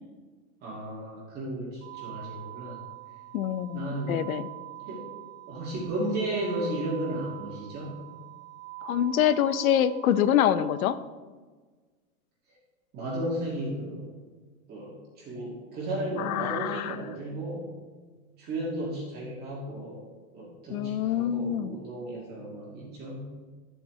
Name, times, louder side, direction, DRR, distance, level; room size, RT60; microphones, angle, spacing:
voice 1, 0.6-2.8 3.7-4.3 4.9-5.0 5.5-8.0 12.9-14.1 14.7-17.7 18.4-20.0 20.3-23.3, right 1 dB, 20° right, -5 dB, 2.0 m, -34 dB
sound 1, 1.8-10.8, right 21 dB, 60° right, 1.4 m, -44 dB
voice 2, 3.3-4.5 8.8-11.0 16.2-17.0 20.7-21.8, left 10 dB, 70° left, 14 dB, 0.7 m, -25 dB
12.5 x 8.5 x 3.2 m, 1.4 s
supercardioid pair, 165°, 44 cm